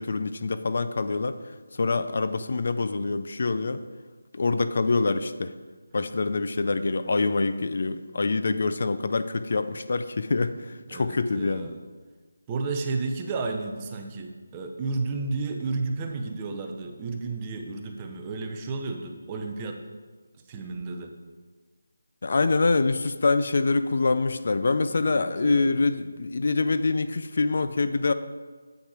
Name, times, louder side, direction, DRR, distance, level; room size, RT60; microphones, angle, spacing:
voice 1, 0.0-1.4 1.7-3.8 4.3-5.5 5.9-11.7 22.2-28.1, left 3 dB, 55° left, 11 dB, 0.4 m, -25 dB
voice 2, 10.9-11.8 12.5-19.8 20.5-21.1 25.0-25.7, right 3 dB, 20° right, 3 dB, 0.7 m, -32 dB
8.2 x 6.6 x 4.8 m, 1.4 s
figure-of-eight pair, 170°, 0 cm